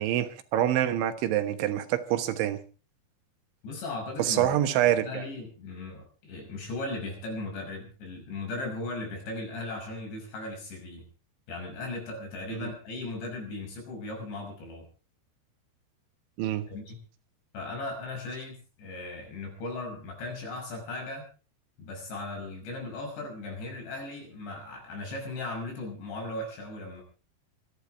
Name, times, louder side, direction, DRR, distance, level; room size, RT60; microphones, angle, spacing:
voice 1, 0.0-2.6 4.2-5.2 12.5-12.7 16.4-16.7, right 12 dB, 85° right, 3.8 m, -26 dB
voice 2, 3.6-4.5 4.9-11.1 11.5-14.9 16.7-17.0 17.5-21.3 21.8-27.0, left 2 dB, 70° left, 8.1 m, -37 dB
26.5 x 10.5 x 4.6 m
omnidirectional pair, 5.2 m